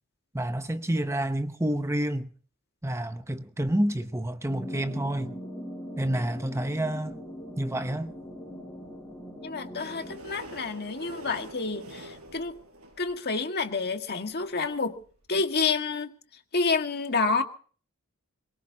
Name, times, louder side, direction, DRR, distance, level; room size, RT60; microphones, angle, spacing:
voice 1, 0.3-2.3 2.8-5.4 6.0-7.2 7.6-8.1, right 1 dB, 15° right, 0.8 m, -29 dB
sound 1, 4.5-10.2, equal, 10° left, 5.1 m, -40 dB
voice 2, 9.4-12.6 13.0-15.0 15.3-16.1 16.5-17.4, left 4 dB, 50° left, 1.8 m, -29 dB
sound 2, 9.8-13.6 14.3-14.4 14.6-14.7 14.9-15.0 15.3-15.4, right 1 dB, 75° right, 5.3 m, -45 dB
23.0 x 21.5 x 2.9 m
head